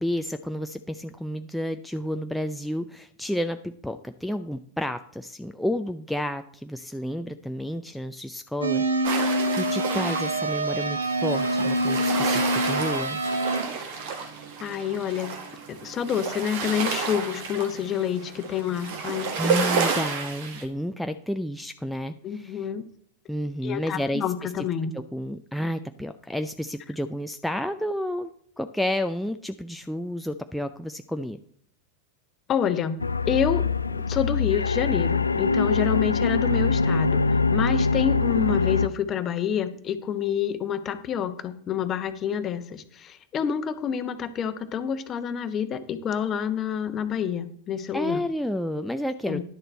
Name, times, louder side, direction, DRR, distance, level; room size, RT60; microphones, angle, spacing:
voice 1, 0.0-13.2 19.4-22.7 23.3-24.7 24.9-28.3 28.6-31.4 47.9-49.4, equal, ahead, 6 dB, 0.5 m, -31 dB
sound 1, 8.6-13.6, right 1 dB, 80° right, 0.9 m, -26 dB
sound 2, 9.0-20.6, right 5 dB, 55° right, 1.8 m, -31 dB
voice 2, 14.6-15.4 15.8-19.6 22.2-22.9 23.6-24.9 32.5-33.0 33.2-48.2 49.2-49.4, left 8 dB, 30° left, 10 dB, 1.0 m, -28 dB
sound 3, 33.0-38.9, left 4 dB, 85° left, 0.3 m, -23 dB
11.0 x 6.7 x 4.4 m, 0.62 s
figure-of-eight pair, 85°, 0 cm